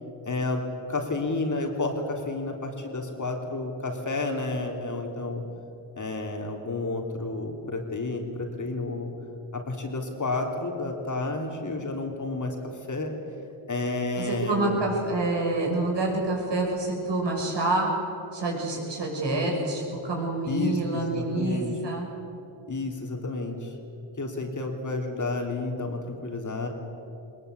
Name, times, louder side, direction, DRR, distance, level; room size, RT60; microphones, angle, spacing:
voice 1, 0.2-5.4 6.0-9.1 9.5-13.1 13.7-14.8 20.5-21.7 22.7-23.8 24.2-26.7, left 2 dB, 40° left, 2 dB, 3.3 m, -31 dB
voice 2, 14.2-17.9 18.3-22.1, right 2 dB, 60° right, -1 dB, 6.4 m, -27 dB
20.5 x 20.0 x 8.1 m, 2.8 s
cardioid pair, 85°, 47 cm